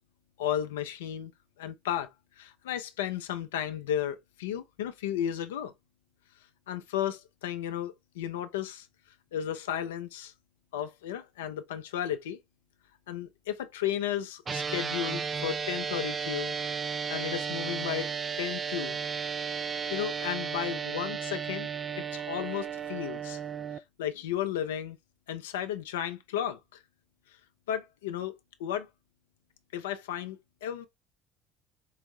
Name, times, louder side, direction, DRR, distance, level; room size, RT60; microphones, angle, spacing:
voice 1, 0.4-1.3 1.6-2.1 2.4-5.7 6.7-8.9 9.3-10.3 10.7-12.4 13.1-16.6 17.1-19.0 19.9-21.7 22.0-23.4 24.0-25.0 25.3-26.6 27.7-28.3 28.6-28.9 29.7-30.9, left 10 dB, 75° left, 0.5 m, -34 dB
sound 1, 14.5-23.8, right 6 dB, 35° right, 0.3 m, -34 dB
4.7 x 2.6 x 3.1 m
figure-of-eight pair, 55°, 0 cm